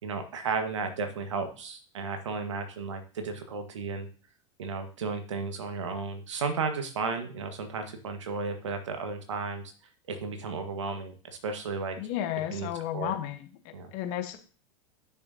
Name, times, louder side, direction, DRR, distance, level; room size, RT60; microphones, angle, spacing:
voice 1, 0.0-4.1 4.6-9.7 10.1-12.0 12.5-13.1 13.7-13.9, right 4 dB, 75° right, 6 dB, 1.6 m, -34 dB
voice 2, 12.0-13.5 13.9-14.4, left 12 dB, 50° left, 8 dB, 1.3 m, -33 dB
10.5 x 6.5 x 2.8 m, 0.39 s
hypercardioid pair, 90°, 16 cm